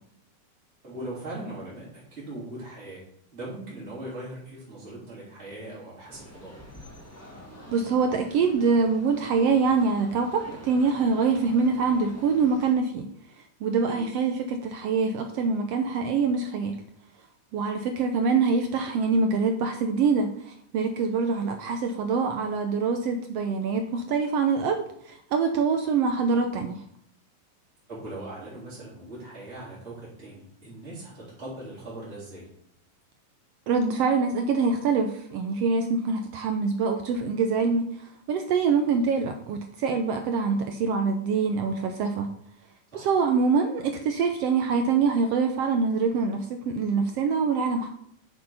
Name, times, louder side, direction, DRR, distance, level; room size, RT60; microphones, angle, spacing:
voice 1, 0.8-3.0 3.3-6.5 13.9-14.0 27.9-32.5 38.7-38.8 42.9-43.1, right 1 dB, 20° right, -8 dB, 3.6 m, -40 dB
sound 1, 6.1-12.7, left 1 dB, 10° left, 0.7 m, -46 dB
voice 2, 7.7-13.1 13.6-16.8 17.5-26.8 33.7-42.3 42.9-47.9, right 5 dB, 80° right, 6 dB, 1.4 m, -25 dB
7.7 x 6.9 x 5.4 m, 0.69 s
omnidirectional pair, 3.6 m